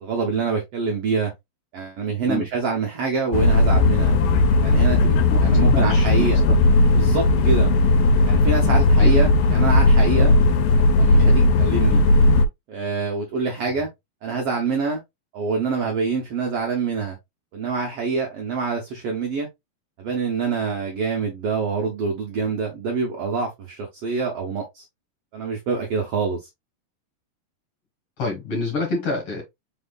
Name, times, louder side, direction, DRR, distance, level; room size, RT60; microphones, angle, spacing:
voice 1, 0.0-1.3 1.7-4.2 4.6-6.4 6.9-7.7 8.3-10.3 11.0-12.0 12.7-13.9 14.2-15.0 15.3-17.2 17.5-19.5 20.0-24.8 25.3-26.5, right 5 dB, 90° right, 1.3 m, -26 dB
sound 1, 3.3-12.5, left 2 dB, 80° left, 2.1 m, -16 dB
voice 2, 5.6-6.3 9.0-9.2 28.2-29.4, left 3 dB, 55° left, 1.9 m, -27 dB
4.8 x 4.4 x 2.3 m
omnidirectional pair, 4.1 m